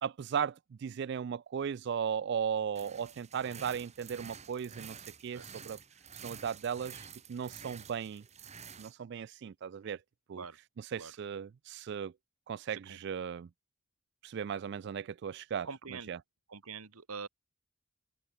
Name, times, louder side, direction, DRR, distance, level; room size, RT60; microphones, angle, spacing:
voice 1, 0.0-5.8 6.2-8.2 8.8-10.0 10.3-10.4 10.9-12.1 12.5-13.5 14.2-15.7 16.1-16.2, right 7 dB, 50° right, 0.3 m, -36 dB
sound 1, 2.8-8.9, right 7 dB, 30° right, 2.5 m, -50 dB
voice 2, 12.7-13.0 15.6-16.1 16.5-17.3, right 5 dB, 90° right, 1.7 m, -45 dB
open air
head